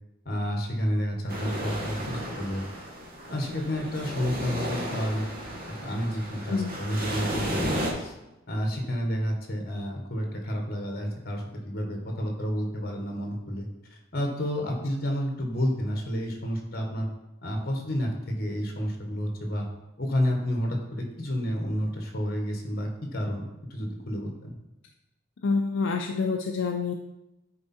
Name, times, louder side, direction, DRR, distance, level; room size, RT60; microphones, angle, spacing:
voice 1, 0.2-2.6 3.3-5.3 5.6-8.1 8.5-13.7 14.1-17.1 17.4-19.7 20.0-23.4 23.7-24.6, equal, 50° left, 2 dB, 1.6 m, -30 dB
sound 1, 1.3-7.9, equal, 45° right, 1.6 m, -34 dB
voice 2, 25.4-26.9, left 4 dB, 75° left, 3 dB, 0.5 m, -27 dB
9.6 x 4.4 x 4.4 m, 0.95 s
head